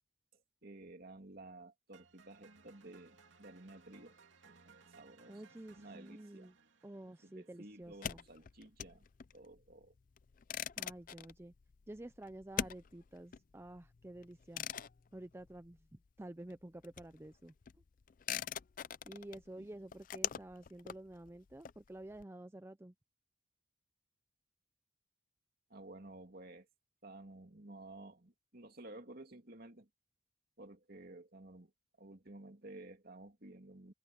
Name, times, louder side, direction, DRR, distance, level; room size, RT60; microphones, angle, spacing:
voice 1, 0.3-4.2 4.4-5.4 5.7-6.5 7.2-9.1 9.3-9.9 19.6-19.7 25.7-26.7 27.0-29.9 30.6-31.7 32.0-33.9, right 2 dB, 50° right, 2.8 m, -53 dB
sound 1, 1.9-8.0, right 4 dB, 70° right, 2.7 m, -64 dB
voice 2, 5.3-6.5 6.8-8.2 10.8-11.5 11.9-14.7 15.1-17.5 19.0-22.9, right 1 dB, 15° right, 0.5 m, -50 dB
sound 2, 7.8-16.2 16.4-22.2, left 9 dB, 45° left, 0.4 m, -44 dB
head